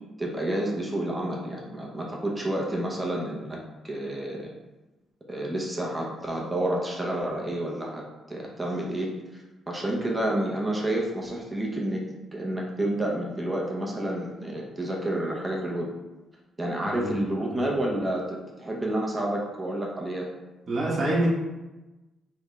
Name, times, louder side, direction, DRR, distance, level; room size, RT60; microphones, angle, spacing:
voice 1, 0.2-3.6 3.8-4.5 5.3-8.0 8.3-12.0 12.3-15.9 16.6-20.3, right 1 dB, 15° right, -2 dB, 0.8 m, -29 dB
voice 2, 16.8-17.2 17.5-17.7 20.7-21.3, right 2 dB, 45° right, -6 dB, 1.1 m, -27 dB
3.5 x 3.4 x 3.1 m, 1.1 s
cardioid pair, 95°, 0 cm